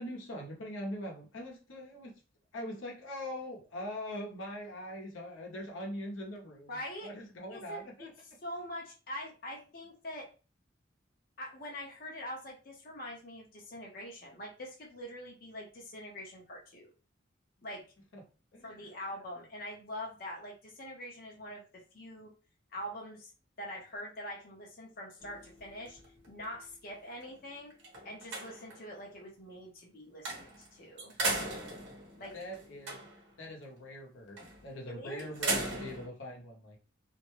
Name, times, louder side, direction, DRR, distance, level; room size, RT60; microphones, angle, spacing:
voice 1, 0.0-2.1 2.5-8.1 18.1-18.2 18.5-18.8 32.3-33.1 33.4-36.8, left 1 dB, 90° left, 0 dB, 0.8 m, -42 dB
voice 2, 6.7-7.1 7.5-8.1 8.4-10.3 11.4-16.9 17.6-17.8 18.6-22.3 22.7-23.3 23.6-26.0 26.3-27.7 28.0-31.1 32.2-32.3 34.9-35.3, equal, 50° left, -1 dB, 0.7 m, -44 dB
sound 1, 25.2-26.7 27.2-27.3 27.7-28.9 30.3-30.7 31.0-33.3 34.4-34.7 35.2-36.1, right 2 dB, 70° right, 0.9 m, -37 dB
2.5 x 2.1 x 3.0 m, 0.35 s
head